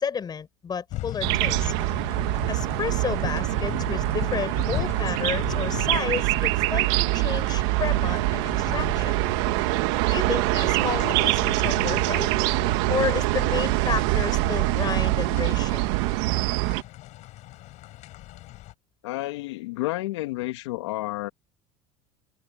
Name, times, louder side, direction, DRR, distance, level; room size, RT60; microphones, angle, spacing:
voice 1, 0.0-1.7 2.5-9.1 10.0-12.3 12.9-15.8, left 6 dB, 30° left, 6.0 m, -31 dB
sound 1, 0.9-18.7, left 17 dB, 60° left, 4.9 m, -38 dB
sound 2, 1.2-16.8, right 22 dB, 75° right, 1.6 m, -24 dB
voice 2, 19.0-21.3, left 19 dB, 85° left, 1.9 m, -30 dB
supercardioid pair, 105°, 14 cm